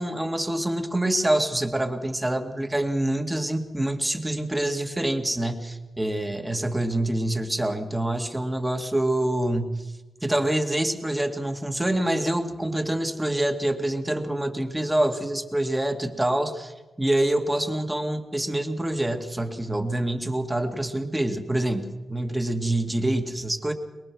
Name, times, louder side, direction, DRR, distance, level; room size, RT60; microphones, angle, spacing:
voice 1, 0.0-9.9 10.2-23.7, right 1 dB, 10° right, 5 dB, 2.1 m, -26 dB
23.0 x 22.5 x 6.2 m, 1.1 s
wide cardioid pair, 135°, 0 cm